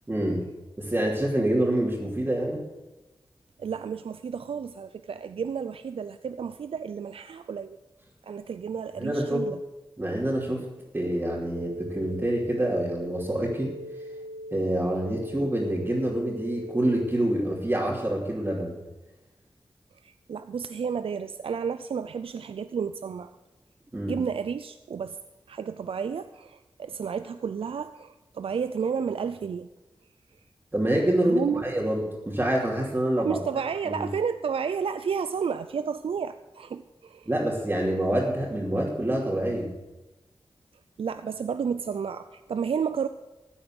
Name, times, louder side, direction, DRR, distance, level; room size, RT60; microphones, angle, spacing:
voice 1, 0.1-0.4 0.8-2.6 9.0-9.4 10.0-10.6 10.9-13.7 14.5-18.7 23.9-24.2 30.7-32.0 32.3-33.4 33.8-34.1 37.3-39.7, right 1 dB, 25° right, -6 dB, 2.9 m, -26 dB
voice 2, 3.6-7.8 8.2-9.6 20.0-23.3 24.1-25.2 25.5-29.7 31.2-31.6 33.2-37.3 41.0-43.1, right 6 dB, 85° right, 11 dB, 0.4 m, -31 dB
sound 1, 11.5-17.2, equal, 60° right, 0.9 m, -40 dB
15.0 x 8.8 x 6.5 m, 1.1 s
wide cardioid pair, 80°, 9 cm